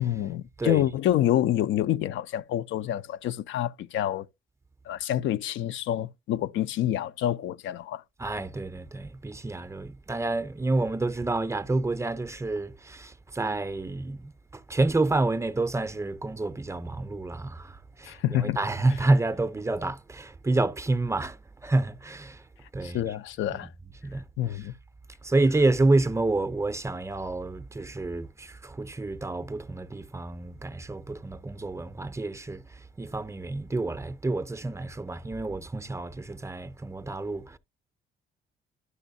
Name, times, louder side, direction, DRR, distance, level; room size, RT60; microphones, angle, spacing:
voice 1, 0.0-4.3 4.9-8.0 18.0-18.6 22.8-23.7 24.4-24.7, left 12 dB, 75° left, 0.4 m, -27 dB
voice 2, 8.2-22.4 22.7-23.0 23.5-23.7 24.0-24.6 25.2-37.6, right 2 dB, 15° right, 0.5 m, -29 dB
11.0 x 6.1 x 2.6 m
cardioid pair, 90°, 20 cm